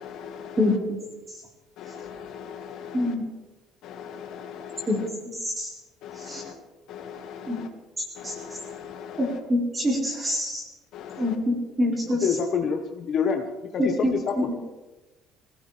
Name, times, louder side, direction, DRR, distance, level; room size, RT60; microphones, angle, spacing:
voice 1, 0.0-0.5 1.9-2.9 4.0-4.9 6.4-6.5 6.9-7.4 8.2-8.4 8.6-8.8 9.1-9.2, left 7 dB, 60° left, 3 dB, 1.9 m, -39 dB
voice 2, 0.6-1.0 2.9-3.2 4.9-5.0 5.4-5.7 6.2-6.4 7.5-7.6 8.2-8.3 9.2-10.6 11.1-12.3 13.8-14.5, left 1 dB, 15° right, -2 dB, 4.4 m, -25 dB
voice 3, 12.2-13.4 14.0-14.3, left 6 dB, 40° left, 3 dB, 1.3 m, -25 dB
24.0 x 16.5 x 3.5 m, 1.1 s
cardioid pair, 175°, 0 cm